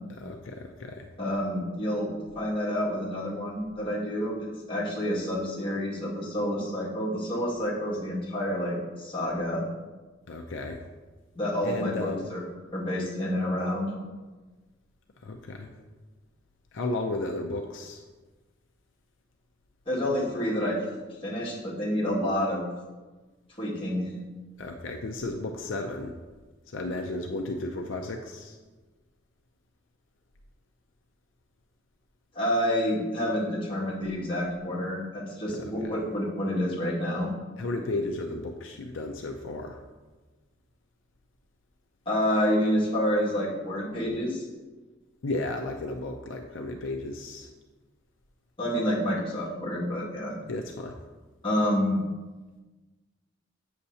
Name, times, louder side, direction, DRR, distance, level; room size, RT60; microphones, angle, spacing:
voice 1, 0.2-1.1 10.3-10.8 11.6-12.3 15.2-15.7 16.7-18.0 24.6-26.1 26.7-28.6 35.5-36.0 37.6-39.8 45.2-47.5 50.5-51.0, left 2 dB, 75° left, 3 dB, 0.5 m, -34 dB
voice 2, 1.2-4.3 4.7-9.6 11.3-12.4 12.7-13.9 19.9-20.8 21.2-22.7 23.6-24.1 32.3-37.3 42.1-44.5 48.6-50.3 51.4-52.0, equal, 30° left, -6 dB, 1.9 m, -28 dB
8.2 x 6.5 x 2.8 m, 1.3 s
head